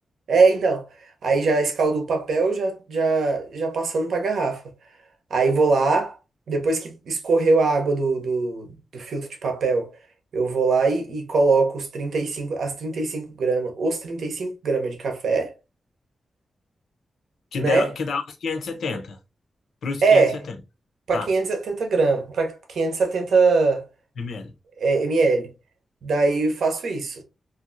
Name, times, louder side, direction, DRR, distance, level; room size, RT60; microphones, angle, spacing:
voice 1, 0.3-0.8 1.2-4.6 5.3-6.2 6.5-9.9 10.3-15.5 17.6-17.9 20.0-20.4 21.1-23.8 24.8-25.5 26.0-27.2, right 3 dB, 80° right, 0.8 m, -22 dB
voice 2, 17.5-19.2 19.8-20.5 21.1-21.3 24.2-24.5, left 4 dB, 80° left, 0.6 m, -28 dB
3.3 x 2.5 x 2.5 m
wide cardioid pair, 155°, 0 cm